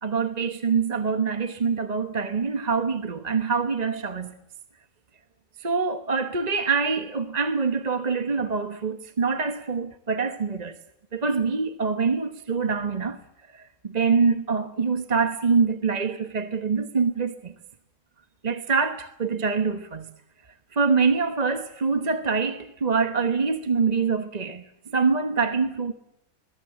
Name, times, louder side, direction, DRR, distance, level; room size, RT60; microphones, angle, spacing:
voice 1, 0.0-4.3 5.6-10.8 11.1-13.2 13.5-17.5 18.4-20.1 20.7-24.6 24.9-25.9, right 5 dB, 30° right, 1.1 m, -25 dB
24.5 x 21.5 x 7.6 m
omnidirectional pair, 1.5 m